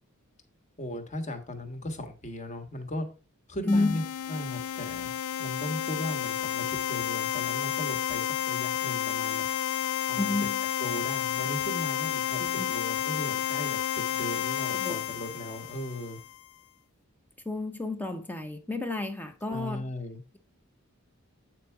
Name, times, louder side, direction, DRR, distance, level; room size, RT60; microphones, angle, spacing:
voice 1, 0.8-3.1 3.5-4.0 4.3-9.5 10.1-10.3 10.8-16.2 19.5-20.2, left 1 dB, 30° left, 1.2 m, -37 dB
sound 1, 3.7-16.4, left 10 dB, 80° left, 0.3 m, -31 dB
voice 2, 3.7-4.0 10.1-10.6 12.4-12.7 14.7-14.9 17.5-19.9, left 2 dB, 10° left, 0.7 m, -30 dB
8.1 x 4.5 x 4.6 m
head